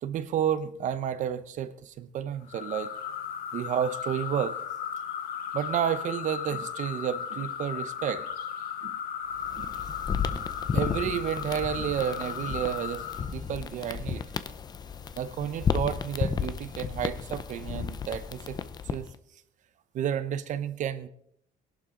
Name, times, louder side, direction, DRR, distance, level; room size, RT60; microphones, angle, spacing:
voice 1, 0.0-2.9 3.5-4.6 5.5-8.3 8.8-9.0 9.5-9.7 10.3-10.5 10.7-14.2 15.2-18.6 18.9-19.1 19.9-21.1, right 9 dB, 50° right, 0.8 m, -31 dB
sound 1, 2.5-13.3, left 8 dB, 60° left, 1.1 m, -36 dB
sound 2, 9.3-19.1, left 6 dB, 25° left, 0.5 m, -33 dB
21.5 x 11.5 x 3.8 m
cardioid pair, 170°, 16 cm